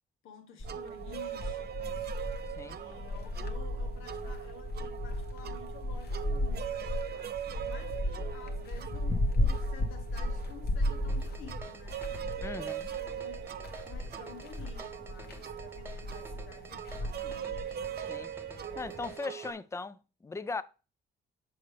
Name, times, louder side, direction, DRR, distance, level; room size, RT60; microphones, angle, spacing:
voice 1, 0.2-2.2 2.7-12.1 12.5-13.5 13.9-17.6, left 6 dB, 90° left, 1.6 m, -52 dB
sound 1, 0.6-19.1, left 1 dB, 55° left, 1.4 m, -36 dB
sound 2, 0.6-19.5, right 11 dB, 55° right, 0.6 m, -41 dB
sound 3, 11.1-19.5, right 2 dB, 10° right, 1.0 m, -50 dB
voice 2, 12.4-12.9 18.1-18.3 18.8-20.6, left 3 dB, 15° left, 0.5 m, -38 dB
7.1 x 5.4 x 3.3 m
cardioid pair, 90°, 20 cm